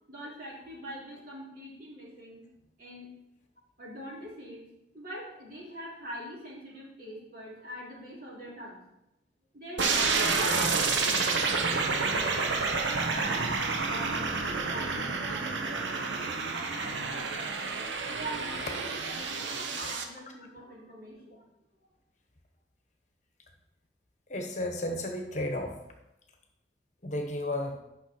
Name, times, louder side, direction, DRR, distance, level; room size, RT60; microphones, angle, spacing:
voice 1, 0.1-3.1 3.8-4.7 4.9-8.8 9.5-12.6 12.9-17.5 18.0-21.4, right 1 dB, 50° right, -5 dB, 3.1 m, -44 dB
sound 1, 9.8-20.0, right 4 dB, 90° right, 0.9 m, -29 dB
voice 2, 24.3-25.8 27.0-27.8, left 1 dB, 40° left, 3 dB, 1.1 m, -33 dB
9.7 x 6.0 x 4.4 m, 0.87 s
head